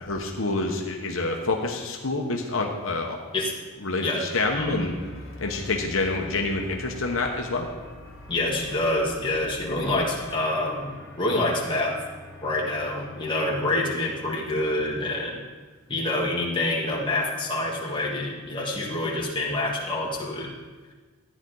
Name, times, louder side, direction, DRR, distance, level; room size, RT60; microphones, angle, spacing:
voice 1, 0.0-3.2 3.8-4.9 5.4-7.7, left 3 dB, 65° left, 1 dB, 1.1 m, -27 dB
sound 1, 4.3-14.6, left 1 dB, 10° right, 2.4 m, -44 dB
voice 2, 4.5-5.0 8.3-12.0 12.4-15.4 15.9-20.5, left 2 dB, 20° left, -3 dB, 1.7 m, -27 dB
13.5 x 9.8 x 3.9 m, 1.4 s
head